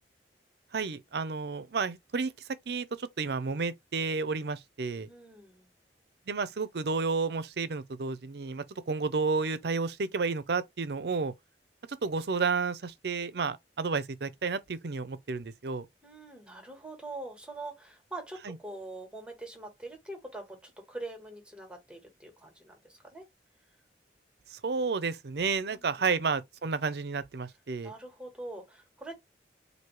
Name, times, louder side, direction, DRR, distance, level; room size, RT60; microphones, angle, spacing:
voice 1, 0.7-2.3 2.7-5.1 6.3-11.3 12.0-15.9 18.5-18.6 24.5-27.9, right 4 dB, 65° right, 0.6 m, -31 dB
voice 2, 5.0-5.7 16.0-23.3 25.7-26.0 27.8-29.2, right 2 dB, 5° right, 1.4 m, -44 dB
4.5 x 2.7 x 3.1 m
head